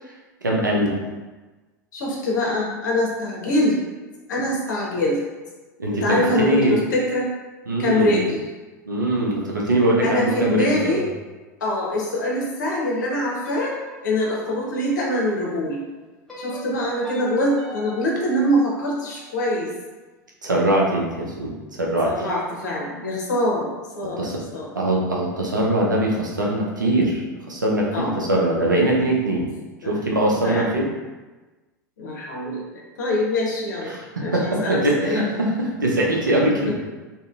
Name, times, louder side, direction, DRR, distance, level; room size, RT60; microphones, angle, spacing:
voice 1, 0.4-0.9 5.8-6.8 7.7-8.2 8.9-11.0 20.4-22.1 24.2-24.4 24.8-29.5 29.9-30.8 33.9-36.7, right 1 dB, 90° right, -2 dB, 0.5 m, -22 dB
voice 2, 1.9-3.8 4.3-5.2 5.9-7.3 7.8-8.4 10.0-11.1 11.6-13.7 14.0-15.8 16.4-19.7 22.0-23.7 23.9-24.7 27.9-28.1 29.8-30.0 30.4-30.7 32.0-33.9 34.2-35.3 36.7-36.8, left 1 dB, 75° left, -3 dB, 0.7 m, -24 dB
sound 1, 13.4-15.6 16.3-19.4, left 1 dB, 5° left, 0.9 m, -42 dB
2.7 x 2.4 x 2.3 m, 1.2 s
figure-of-eight pair, 85°, 10 cm